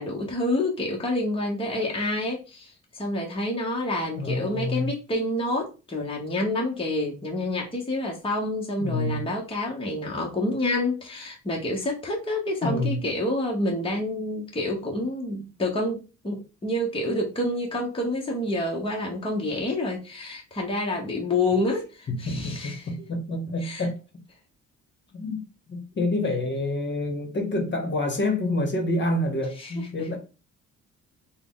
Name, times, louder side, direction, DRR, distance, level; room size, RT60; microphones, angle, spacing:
voice 1, 0.0-22.8 23.6-23.8 29.6-29.7, left 1 dB, 20° left, 1.1 m, -28 dB
voice 2, 4.2-4.9 8.8-9.2 12.6-13.0 22.1-24.0 25.1-25.4 25.7-30.2, left 2 dB, 40° left, 1.3 m, -27 dB
3.8 x 2.3 x 3.7 m
cardioid pair, 90°, 30 cm